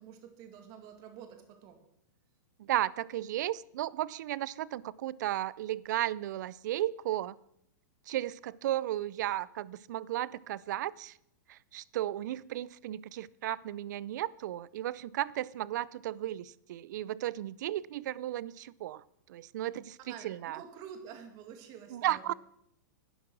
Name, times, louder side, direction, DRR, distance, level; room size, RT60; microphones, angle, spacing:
voice 1, 0.0-1.8 20.1-22.3, right 8 dB, 40° right, 6 dB, 2.2 m, -49 dB
voice 2, 2.7-7.4 8.1-11.1 11.5-19.0 19.3-20.0 20.2-20.6 21.9-22.3, right 13 dB, 65° right, 22 dB, 0.5 m, -34 dB
11.0 x 10.0 x 6.1 m, 0.75 s
hypercardioid pair, 140°, 11 cm